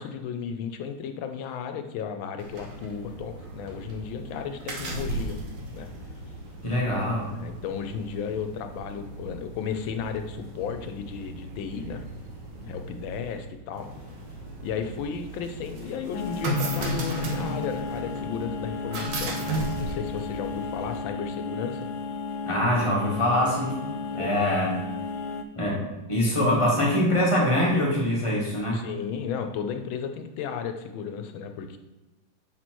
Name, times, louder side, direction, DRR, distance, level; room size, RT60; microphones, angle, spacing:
voice 1, 0.0-5.4 5.7-5.9 7.2-12.0 12.7-13.9 14.6-19.4 19.8-21.9 24.1-24.6 26.3-26.4 28.7-31.8, left 7 dB, 90° left, 7 dB, 1.5 m, -34 dB
sound 1, 2.4-21.0, right 1 dB, 65° right, 1.8 m, -36 dB
voice 2, 6.6-7.3 22.5-23.8 24.2-24.7 25.6-28.8, left 1 dB, 15° left, -3 dB, 1.5 m, -24 dB
sound 2, 16.1-25.4, left 4 dB, 70° left, 1.1 m, -34 dB
6.7 x 4.3 x 4.5 m, 1.1 s
omnidirectional pair, 2.1 m